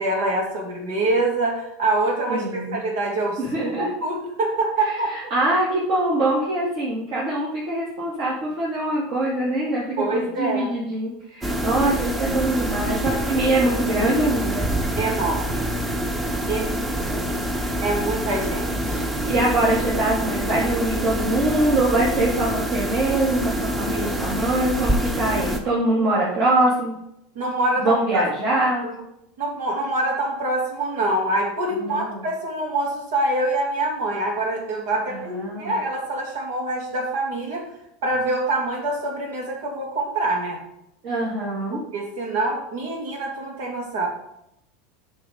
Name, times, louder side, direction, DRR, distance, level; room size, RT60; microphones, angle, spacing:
voice 1, 0.0-5.1 10.0-10.7 15.0-15.7 16.5-16.6 16.9-17.2 17.8-19.4 27.3-28.2 28.5-28.9 29.4-37.7 38.0-40.6 41.7-44.1, right 2 dB, 80° right, 0 dB, 2.5 m, -25 dB
voice 2, 2.3-2.8 3.4-3.9 4.8-14.7 16.4-17.5 19.3-26.9 27.8-28.8 31.7-32.2 35.1-35.8 41.0-41.8, right 1 dB, 50° right, -7 dB, 2.5 m, -23 dB
sound 1, 11.4-25.6, right 1 dB, 15° right, 1.0 m, -26 dB
9.1 x 5.8 x 3.7 m, 0.80 s
supercardioid pair, 145°, 0 cm